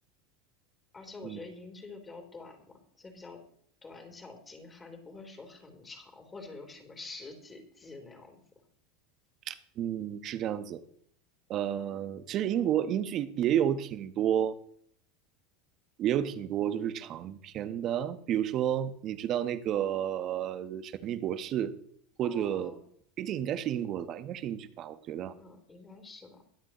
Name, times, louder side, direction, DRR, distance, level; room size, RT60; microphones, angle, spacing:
voice 1, 0.9-3.4 3.8-8.4 22.2-22.8 25.3-26.4, left 3 dB, 20° left, 3 dB, 3.5 m, -47 dB
voice 2, 9.5-10.8 11.5-14.5 16.0-21.7 22.2-22.7 23.2-25.3, right 10 dB, 45° right, 11 dB, 1.2 m, -31 dB
22.5 x 7.6 x 3.1 m, 0.64 s
hypercardioid pair, 90°, 0 cm